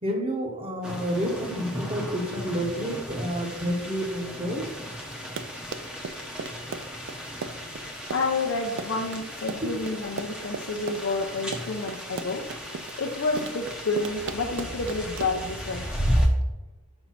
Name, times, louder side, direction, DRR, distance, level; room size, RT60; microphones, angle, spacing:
voice 1, 0.0-4.6 9.6-9.7, equal, 25° right, 2 dB, 1.1 m, -29 dB
sound 1, 0.8-16.3, equal, 5° right, 0.8 m, -34 dB
Run, 5.1-15.5, right 4 dB, 55° right, 0.4 m, -36 dB
voice 2, 8.1-12.5 13.0-15.9, left 3 dB, 60° left, 0 dB, 0.6 m, -29 dB
5.3 x 4.4 x 5.9 m, 1.1 s
head